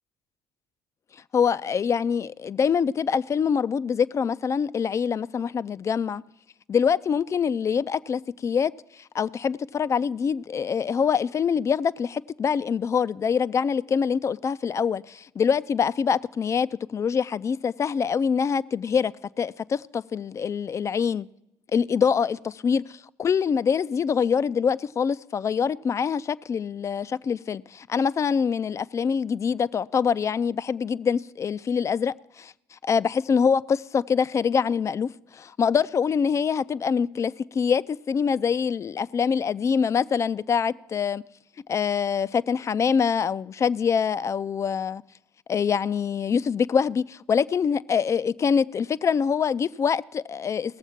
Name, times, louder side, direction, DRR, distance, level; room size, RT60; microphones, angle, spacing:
voice 1, 1.3-6.2 6.7-8.7 9.0-21.3 21.7-41.2 41.7-45.0 45.5-50.8, left 6 dB, 35° left, 0.4 m, -25 dB
17.5 x 7.2 x 5.7 m
supercardioid pair, 70°, 9 cm